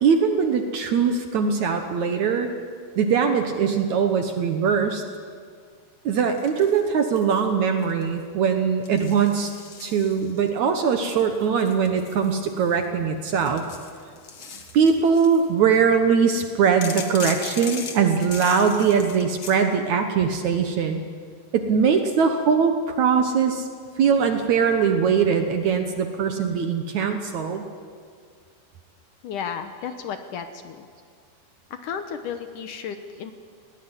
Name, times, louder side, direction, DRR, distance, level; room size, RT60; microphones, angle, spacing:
voice 1, 0.0-2.5 3.0-5.0 6.1-9.5 9.8-13.6 14.7-21.0 21.5-23.7 24.0-27.7, right 6 dB, 65° right, 6 dB, 2.1 m, -21 dB
sound 1, 6.4-7.5 7.8-8.2 8.8-10.5 11.1-12.8 13.3-15.5 16.8-19.6, left 5 dB, 45° left, 1.8 m, -38 dB
voice 2, 29.2-30.9 31.7-33.3, left 7 dB, 70° left, 8 dB, 2.2 m, -33 dB
20.0 x 18.5 x 9.8 m, 2.1 s
omnidirectional pair, 4.4 m